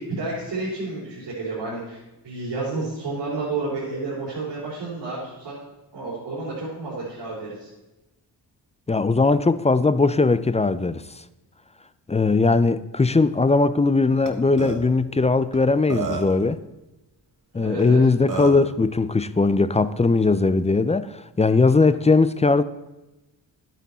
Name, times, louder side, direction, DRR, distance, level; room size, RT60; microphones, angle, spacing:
voice 1, 0.0-5.5 5.9-7.7 17.5-18.0, right 3 dB, 80° right, 4.0 m, -31 dB
voice 2, 8.9-11.0 12.1-16.6 17.5-22.6, left 3 dB, 15° left, 0.4 m, -19 dB
Burping eructation, 14.2-14.3 14.6-14.8 15.5-15.6 15.9-16.4 17.8-17.9 18.3-18.6, right 3 dB, 50° right, 1.6 m, -28 dB
11.5 x 9.1 x 4.2 m
cardioid pair, 75°, 41 cm